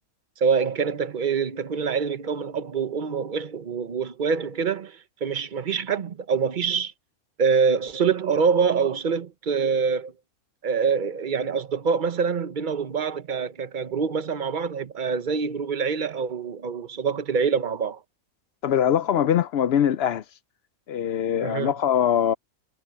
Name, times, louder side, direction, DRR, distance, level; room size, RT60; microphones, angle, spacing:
voice 1, 0.4-6.9 7.4-10.1 10.6-18.0 21.4-21.7, right 6 dB, 40° right, 1.0 m, -25 dB
voice 2, 18.6-20.2 20.9-22.3, left 9 dB, 65° left, 0.6 m, -22 dB
omnidirectional pair, 1.6 m